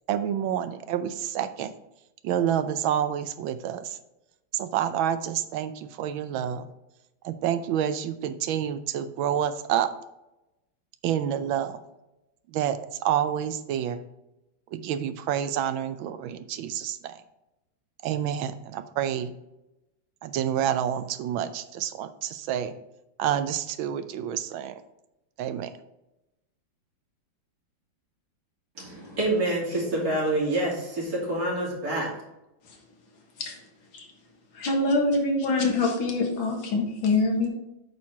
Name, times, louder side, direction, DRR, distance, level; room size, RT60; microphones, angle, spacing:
voice 1, 0.1-1.7 2.2-4.0 4.5-6.7 7.2-9.9 11.0-11.8 12.5-14.0 14.7-17.2 18.0-19.3 20.2-22.7 23.2-24.8 25.4-25.7, right 10 dB, 85° right, 11 dB, 1.4 m, -28 dB
voice 2, 28.7-32.1, right 1 dB, 45° right, -4 dB, 3.1 m, -27 dB
voice 3, 34.5-37.5, left 3 dB, 80° left, 1 dB, 2.3 m, -25 dB
8.5 x 4.5 x 4.6 m, 0.92 s
omnidirectional pair, 2.1 m